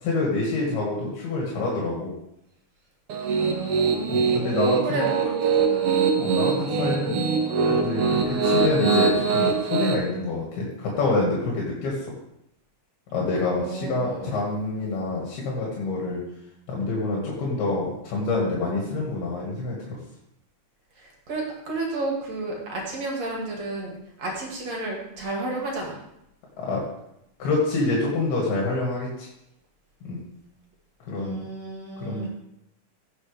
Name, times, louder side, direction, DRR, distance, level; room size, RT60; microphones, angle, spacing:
voice 1, 0.0-2.1 4.1-5.0 6.2-7.2 7.7-12.0 13.1-16.2 16.7-20.0 26.6-26.8 27.4-29.3 30.0-30.2 31.1-31.5 32.0-32.3, left 3 dB, 85° left, -4 dB, 4.0 m, -27 dB
Piano, 3.1-9.9, right 5 dB, 90° right, 1.2 m, -23 dB
voice 2, 3.4-6.1 13.4-14.4 21.0-26.0 31.1-32.3, right 2 dB, 50° right, -2 dB, 3.2 m, -32 dB
16.5 x 7.2 x 3.5 m, 0.80 s
omnidirectional pair, 4.4 m